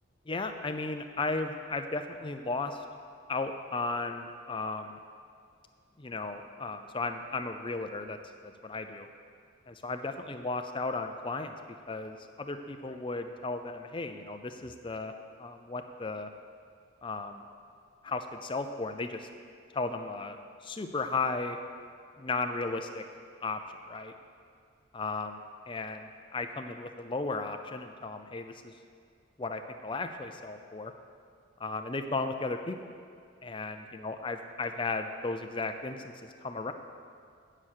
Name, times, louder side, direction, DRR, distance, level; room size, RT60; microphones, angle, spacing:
voice 1, 0.3-2.8 3.3-5.0 6.0-8.2 8.4-9.1 9.7-11.5 11.9-15.1 15.4-16.3 17.0-17.4 18.0-19.3 19.7-20.4 20.6-21.6 22.2-23.0 23.4-23.6 23.9-24.1 24.9-28.7 29.4-30.9 31.6-32.8 33.4-36.0 36.4-36.7, left 3 dB, 25° left, 6 dB, 0.5 m, -35 dB
8.8 x 7.5 x 6.4 m, 2.2 s
head